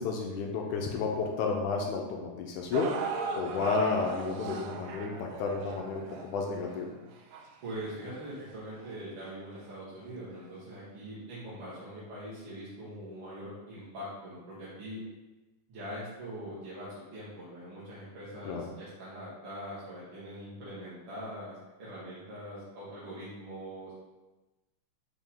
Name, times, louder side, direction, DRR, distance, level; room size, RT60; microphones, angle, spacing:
voice 1, 0.0-3.0 3.4-6.9 18.5-18.7, left 4 dB, 80° left, 1 dB, 2.0 m, -31 dB
sound 1, 2.7-8.9 9.6-9.7 10.5-10.6, right 5 dB, 90° right, 1.6 m, -39 dB
voice 2, 7.6-15.0 15.7-23.9, equal, 55° right, -9 dB, 1.9 m, -42 dB
5.7 x 5.2 x 3.6 m, 1.1 s
omnidirectional pair, 3.9 m